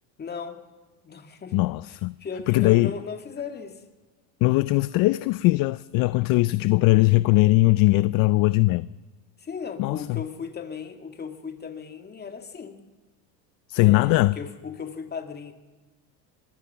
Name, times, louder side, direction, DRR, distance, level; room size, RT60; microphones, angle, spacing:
voice 1, 0.2-0.6 1.0-1.6 1.9-3.8 9.4-12.8 13.8-15.5, left 6 dB, 20° left, 2.4 m, -37 dB
voice 2, 1.5-2.1 2.5-2.9 4.4-8.9 9.8-10.2 13.7-14.3, left 21 dB, 50° left, 0.6 m, -20 dB
24.0 x 21.0 x 5.8 m
supercardioid pair, 135°, 46 cm